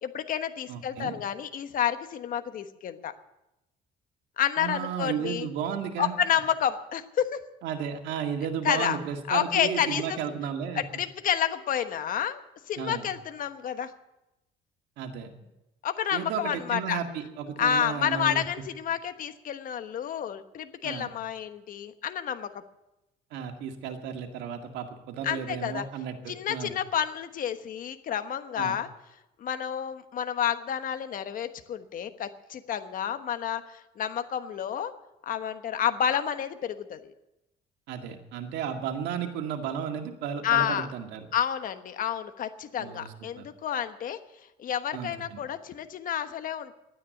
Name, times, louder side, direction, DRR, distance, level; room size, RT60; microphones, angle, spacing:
voice 1, 0.0-3.1 4.4-5.5 6.0-7.4 8.6-9.0 9.3-10.2 10.7-13.9 15.8-17.0 17.6-22.6 25.2-25.8 26.3-28.9 29.4-34.9 35.3-37.1 40.4-40.9 41.3-44.2 44.6-46.7, left 9 dB, 55° left, 9 dB, 1.2 m, -30 dB
voice 2, 0.7-1.2 4.6-6.2 7.6-10.8 12.8-13.1 15.0-15.3 16.1-18.4 20.8-21.1 23.3-26.7 28.6-28.8 37.9-41.3 42.8-43.5 44.9-45.4, right 8 dB, 85° right, 4 dB, 2.1 m, -34 dB
12.0 x 9.8 x 9.6 m, 0.93 s
cardioid pair, 110°, 17 cm